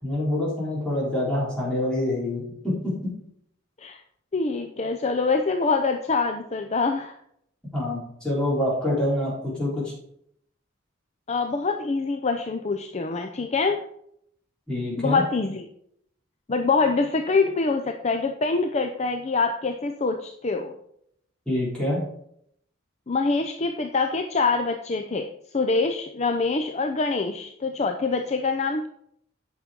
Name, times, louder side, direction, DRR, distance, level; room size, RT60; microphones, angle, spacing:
voice 1, 0.0-3.0 7.7-9.9 14.7-15.2 21.5-22.0, left 1 dB, 5° left, -7 dB, 4.2 m, -26 dB
voice 2, 4.3-7.2 11.3-13.8 15.0-15.6 16.5-20.7 23.1-25.3 25.5-28.9, left 4 dB, 35° left, 5 dB, 0.6 m, -25 dB
8.6 x 6.1 x 5.2 m, 0.71 s
head